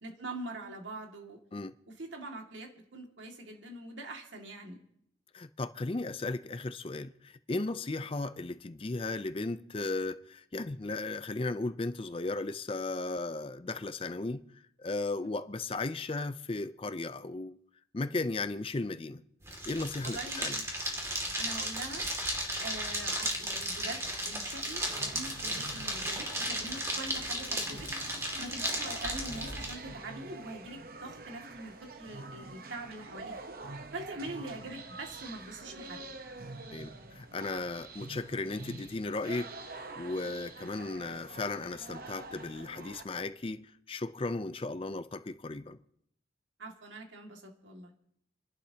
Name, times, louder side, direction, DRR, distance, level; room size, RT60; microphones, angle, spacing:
voice 1, 0.0-1.4 1.9-4.8 20.0-20.7 21.4-22.1 22.6-27.9 28.4-33.3 33.9-36.0 46.6-47.9, right 2 dB, 80° right, 2.2 m, -43 dB
voice 2, 5.3-14.4 14.8-17.6 17.9-19.2 19.6-20.6 36.7-39.5 40.0-45.8, left 2 dB, 30° left, 0.5 m, -35 dB
sound 1, 19.4-29.7, right 1 dB, 15° right, 2.3 m, -35 dB
zoo insideexhibit, 24.8-43.0, right 3 dB, 50° right, 0.9 m, -46 dB
28.5 x 11.5 x 2.9 m
head